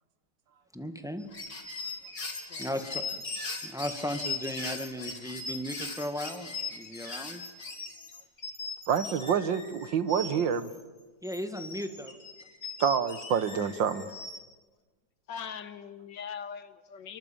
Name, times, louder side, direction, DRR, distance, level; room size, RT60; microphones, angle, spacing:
voice 1, 0.7-1.3 2.6-3.2 3.6-7.4 11.2-12.2, equal, ahead, 7 dB, 1.7 m, -36 dB
sound 1, 1.2-10.8 11.2-14.4, left 4 dB, 55° left, 3.7 m, -39 dB
voice 2, 2.5-2.9 13.6-14.0 15.3-17.2, left 7 dB, 70° left, 12 dB, 1.9 m, -42 dB
voice 3, 8.9-10.7 12.8-14.1, right 7 dB, 75° right, 13 dB, 2.0 m, -27 dB
29.0 x 23.5 x 8.8 m, 1.3 s
omnidirectional pair, 2.0 m